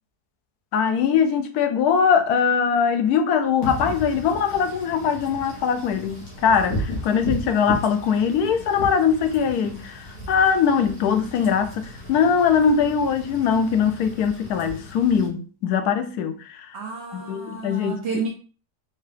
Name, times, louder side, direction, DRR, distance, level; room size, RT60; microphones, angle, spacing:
voice 1, 0.7-16.7 17.1-18.0, left 6 dB, 80° left, 1.1 m, -21 dB
Wind / Rain, 3.6-15.3, left 1 dB, 60° left, 1.5 m, -35 dB
voice 2, 16.7-18.3, right 5 dB, 60° right, 0.7 m, -31 dB
4.6 x 2.3 x 3.3 m
omnidirectional pair, 1.7 m